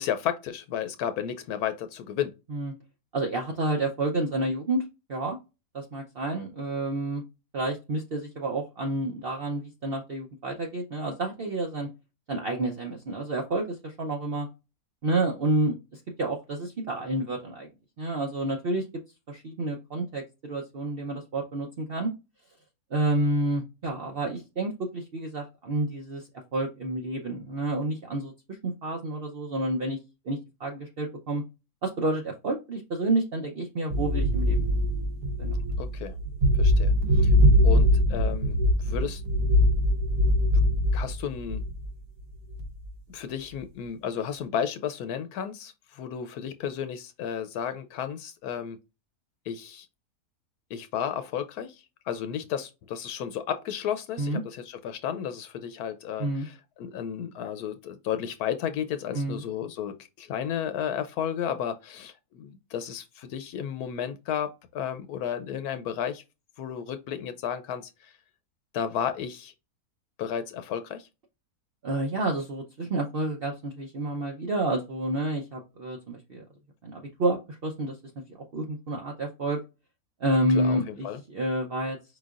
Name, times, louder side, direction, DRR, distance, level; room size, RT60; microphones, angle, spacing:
voice 1, 0.0-2.3 35.8-36.1 36.6-37.3 37.6-39.2 40.9-41.6 43.1-48.8 49.5-49.9 50.7-66.2 66.6-68.1 68.7-69.5 70.2-71.1 80.5-81.2, left 8 dB, 80° left, 1.1 m, -33 dB
voice 2, 3.1-4.8 5.1-5.4 5.7-7.2 7.5-11.9 12.3-14.5 15.0-17.7 18.0-18.9 19.3-22.1 22.9-26.2 26.5-30.0 30.2-31.4 31.8-34.7 35.4-35.5 54.2-54.4 56.2-56.5 59.1-59.4 71.8-76.4 76.8-78.0 78.5-79.6 80.2-82.0, right 2 dB, 50° right, 0.7 m, -29 dB
sound 1, 33.9-41.9 42.5-42.9, left 1 dB, 80° right, 1.5 m, -22 dB
4.9 x 3.9 x 2.4 m
omnidirectional pair, 1.6 m